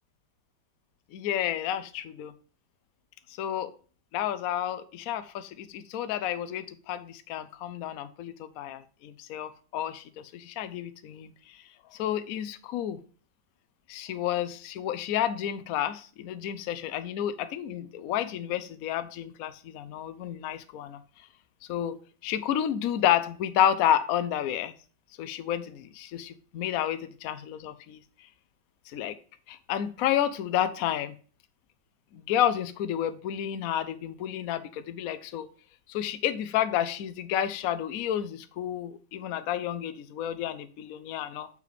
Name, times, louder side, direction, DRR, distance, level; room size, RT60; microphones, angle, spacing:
voice 1, 1.1-2.3 3.4-3.7 4.1-11.6 11.9-13.0 13.9-21.0 21.7-22.0 22.2-24.7 25.2-28.0 28.9-29.2 29.5-31.1 32.1-35.5 35.9-41.5, left 10 dB, 65° left, 11 dB, 0.9 m, -30 dB
6.6 x 5.0 x 4.9 m, 0.40 s
omnidirectional pair, 1.9 m